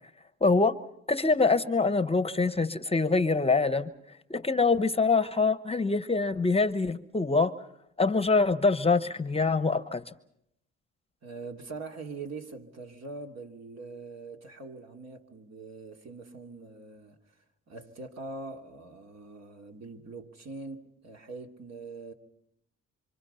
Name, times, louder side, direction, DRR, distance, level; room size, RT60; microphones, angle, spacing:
voice 1, 0.4-0.8 1.1-3.9 4.3-7.5 8.0-10.1, left 4 dB, 20° left, 0.9 m, -25 dB
voice 2, 11.2-17.2 17.7-22.1, right 3 dB, 60° right, 2.9 m, -43 dB
27.0 x 25.5 x 5.6 m
cardioid pair, 90°, 30 cm